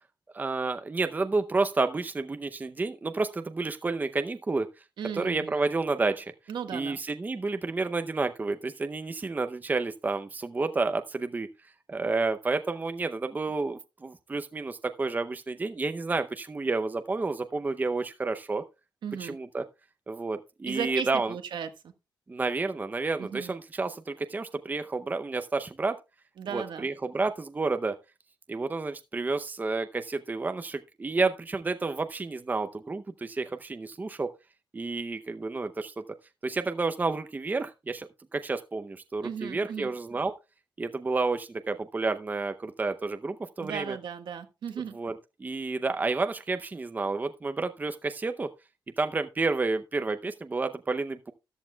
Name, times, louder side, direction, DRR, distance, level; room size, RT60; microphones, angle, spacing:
voice 1, 0.3-4.7 5.1-6.3 6.7-11.5 11.9-18.6 19.2-19.6 20.1-21.3 22.3-26.0 26.5-28.0 28.5-34.3 34.7-36.0 36.4-40.3 40.8-44.0 44.9-45.1 45.4-48.5 49.0-51.3, right 3 dB, 20° right, 0.7 m, -30 dB
voice 2, 5.0-5.6 6.5-7.0 19.0-19.4 20.7-21.7 23.2-23.5 26.4-26.9 39.2-39.9 43.6-45.0, right 7 dB, 75° right, 1.5 m, -36 dB
13.5 x 11.0 x 2.3 m
wide cardioid pair, 125°, 8 cm